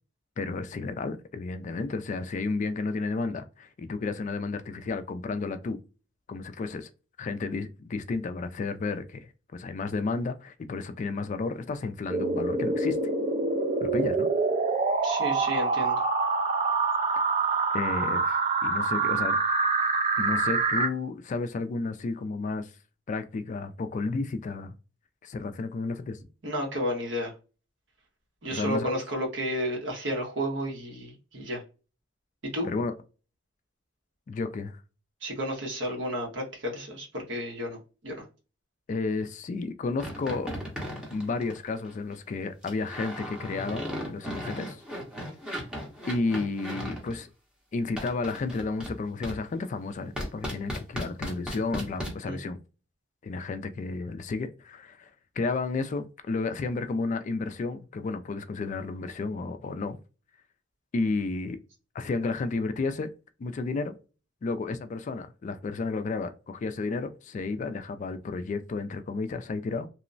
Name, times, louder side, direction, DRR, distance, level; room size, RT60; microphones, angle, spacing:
voice 1, 0.4-5.8 6.3-6.9 7.2-13.0 13.8-14.3 17.7-19.4 20.2-22.7 23.1-24.7 25.2-26.2 28.5-29.0 32.7-32.9 34.3-34.8 38.9-40.5 41.1-44.8 46.1-47.3 47.7-52.6 53.2-55.1 55.4-60.0 60.9-61.6 61.9-63.1 63.4-64.0 64.4-69.9, left 3 dB, 40° left, 0.3 m, -32 dB
sound 1, 12.1-20.9, right 4 dB, 35° right, 0.4 m, -26 dB
voice 2, 15.0-16.0 26.4-27.3 28.4-31.6 32.5-32.7 35.2-38.2 52.2-52.4, equal, 75° right, 1.1 m, -32 dB
sound 2, 40.0-41.9 42.6-47.2 48.0-48.9 49.2-49.4 50.2-52.1, equal, 5° right, 0.7 m, -36 dB
3.0 x 2.0 x 2.5 m
head